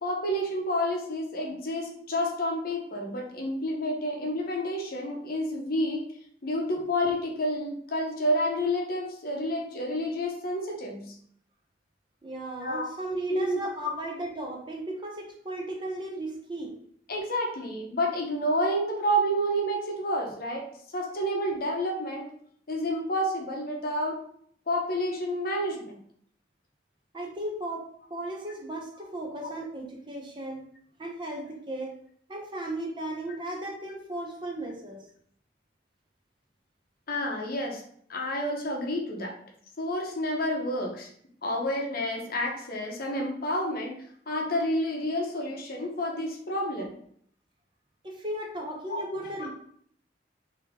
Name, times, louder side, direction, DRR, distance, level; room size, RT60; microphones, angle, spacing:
voice 1, 0.0-6.0 6.4-11.1 12.6-12.8 13.3-13.6 17.1-20.6 20.9-22.3 22.7-24.2 24.7-26.0 29.4-29.5 37.1-37.8 38.1-39.3 39.8-41.1 41.4-46.9 48.9-49.5, equal, 55° left, 1 dB, 0.8 m, -29 dB
voice 2, 12.2-16.7 27.1-30.6 31.0-31.9 32.3-35.1 48.0-49.5, right 1 dB, 25° right, 1 dB, 0.6 m, -36 dB
3.5 x 2.8 x 3.5 m, 0.63 s
head